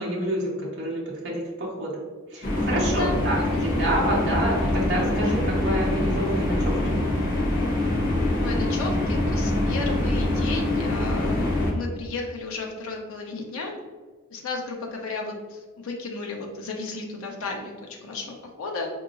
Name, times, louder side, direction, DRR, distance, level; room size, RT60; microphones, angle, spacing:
voice 1, 0.0-2.0 2.3-7.0, right 1 dB, 60° right, -5 dB, 1.0 m, -28 dB
sound 1, 2.4-11.7, left 1 dB, 40° left, 0.8 m, -24 dB
voice 2, 2.7-3.9 8.4-13.7 14.3-18.9, left 3 dB, 80° left, 0 dB, 0.6 m, -34 dB
4.7 x 2.9 x 2.4 m, 1.4 s
head